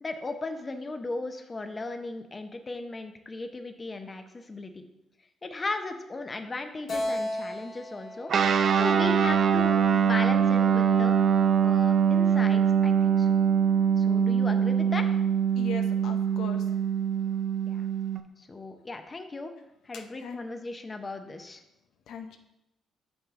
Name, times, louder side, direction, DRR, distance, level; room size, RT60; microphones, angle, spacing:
voice 1, 0.0-4.8 5.4-11.2 11.6-13.3 14.0-15.2 17.6-17.9 18.4-19.5 19.8-21.6, left 2 dB, 30° left, 7 dB, 0.7 m, -37 dB
Keyboard (musical), 6.9-10.3, left 1 dB, 60° left, 2.0 m, -36 dB
Guitar, 8.3-18.2, right 7 dB, 55° right, 0.6 m, -23 dB
voice 2, 15.6-16.7 19.9-20.4 22.1-22.4, left 6 dB, 80° left, 6 dB, 0.6 m, -39 dB
6.6 x 6.2 x 3.7 m, 0.88 s
cardioid pair, 90°, 0 cm